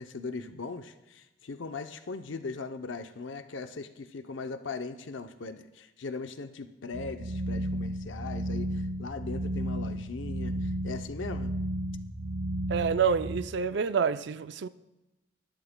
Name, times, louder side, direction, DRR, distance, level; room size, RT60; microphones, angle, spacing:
voice 1, 0.0-11.5, left 4 dB, 70° left, 0.6 m, -39 dB
sound 1, 6.9-13.4, right 1 dB, 75° right, 3.6 m, -33 dB
voice 2, 12.7-14.7, right 6 dB, 60° right, 0.4 m, -27 dB
20.5 x 12.0 x 2.2 m
head